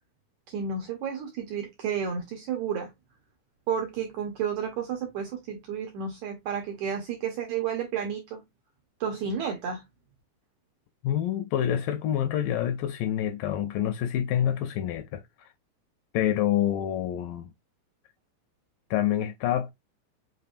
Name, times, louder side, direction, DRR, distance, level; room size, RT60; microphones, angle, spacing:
voice 1, 0.5-2.9 3.7-8.4 9.0-9.8, right 7 dB, 75° right, 1.7 m, -31 dB
voice 2, 11.0-15.5 16.1-17.5 18.9-19.7, left 10 dB, 80° left, 2.0 m, -27 dB
5.5 x 3.8 x 2.5 m
omnidirectional pair, 4.2 m